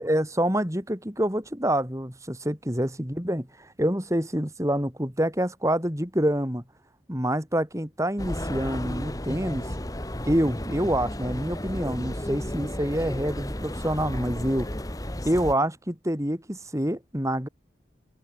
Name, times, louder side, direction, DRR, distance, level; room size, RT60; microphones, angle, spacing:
voice 1, 0.0-6.6 7.1-9.7 10.3-14.7 15.2-17.5, right 1 dB, 15° right, 4.6 m, -27 dB
sound 1, 8.2-15.6, left 1 dB, 20° left, 2.3 m, -33 dB
head